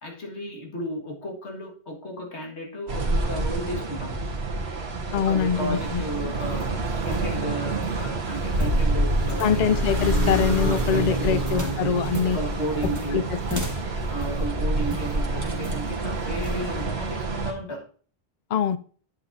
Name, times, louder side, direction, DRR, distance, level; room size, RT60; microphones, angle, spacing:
voice 1, 0.0-4.2 5.1-9.7 10.6-13.3 14.1-17.9, right 1 dB, 85° left, 1 dB, 2.2 m, -34 dB
sound 1, 2.9-17.5, right 2 dB, 70° right, 1.7 m, -28 dB
voice 2, 5.1-6.0 9.4-12.4 13.1-13.2 13.5-13.6 18.5-18.8, left 7 dB, 55° left, 15 dB, 0.5 m, -23 dB
sound 2, 5.5-15.2 15.6-16.0 16.4-16.7, left 1 dB, 15° right, 1.4 m, -35 dB
sound 3, 7.0-15.2, equal, 50° right, 1.8 m, -32 dB
9.5 x 8.2 x 2.7 m, 0.43 s
omnidirectional pair, 1.1 m